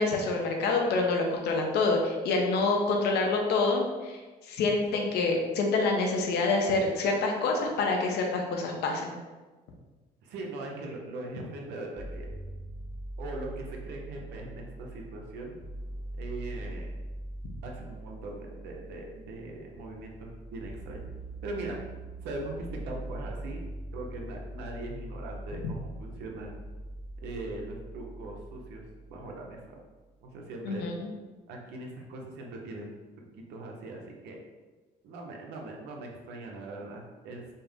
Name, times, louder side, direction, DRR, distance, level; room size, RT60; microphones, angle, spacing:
voice 1, 0.0-4.2 4.5-9.1 30.6-31.1, left 3 dB, 75° left, 1 dB, 0.8 m, -27 dB
voice 2, 10.2-12.3 13.2-15.5 16.2-16.9 17.6-21.1 21.4-21.8 22.2-23.6 23.9-26.6 27.2-29.6 30.2-30.8 31.5-32.9 33.5-34.4 35.0-37.5, right 2 dB, 85° right, 0 dB, 0.9 m, -40 dB
sound 1, 12.0-29.9, right 1 dB, ahead, 0.5 m, -42 dB
5.4 x 2.1 x 3.6 m, 1.3 s
cardioid pair, 110°, 17 cm